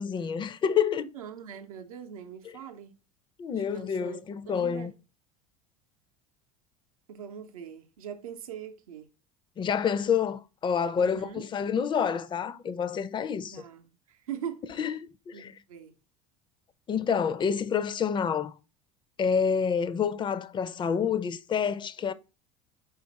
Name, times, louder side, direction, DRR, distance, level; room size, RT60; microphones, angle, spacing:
voice 1, 0.0-1.1 3.4-4.9 9.6-13.6 14.8-15.5 16.9-18.5 19.2-22.1, left 7 dB, 25° left, 0.4 m, -28 dB
voice 2, 1.1-2.9 3.7-4.9 7.1-9.1 11.0-11.4 13.5-14.6 15.3-15.9, right 8 dB, 85° right, 0.6 m, -42 dB
5.0 x 2.5 x 3.9 m
hypercardioid pair, 80°, 18 cm